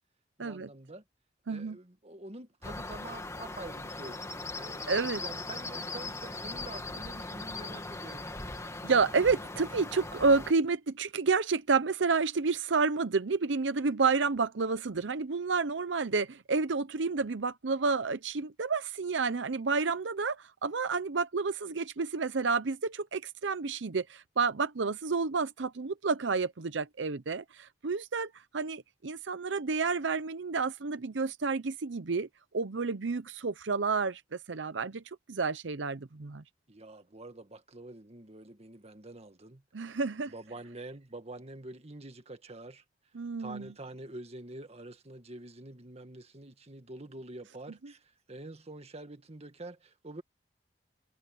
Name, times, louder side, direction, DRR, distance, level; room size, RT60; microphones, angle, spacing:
voice 1, 0.4-1.0 1.5-4.2 4.6-8.3 36.7-39.6 40.3-42.8 43.4-50.2, right 2 dB, 35° right, 1.8 m, -46 dB
sound 1, 2.6-10.5, left 2 dB, 15° left, 2.0 m, -39 dB
voice 2, 4.9-5.2 8.8-32.3 32.5-35.0 35.3-36.4 39.7-40.3 43.1-43.7, right 4 dB, 85° right, 0.7 m, -30 dB
head